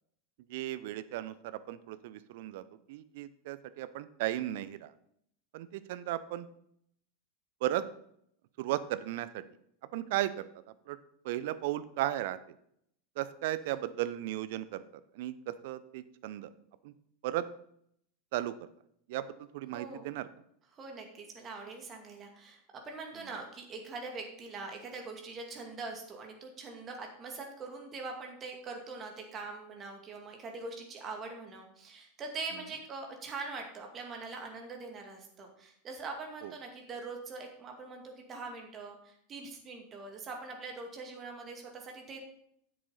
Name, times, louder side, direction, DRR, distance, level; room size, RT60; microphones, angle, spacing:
voice 1, 0.5-4.9 5.5-6.5 7.6-7.8 8.6-9.4 9.9-10.5 10.9-11.0 11.2-12.4 13.2-14.8 15.1-16.5 16.8-16.9 17.2-17.5 18.3-18.7 19.1-20.3 23.2-23.3 36.4-36.5, right 14 dB, 55° right, 14 dB, 0.6 m, -35 dB
voice 2, 19.7-20.1 20.7-42.2, right 3 dB, 30° right, 2 dB, 2.3 m, -43 dB
10.5 x 7.6 x 4.0 m, 0.70 s
figure-of-eight pair, 85°, 0 cm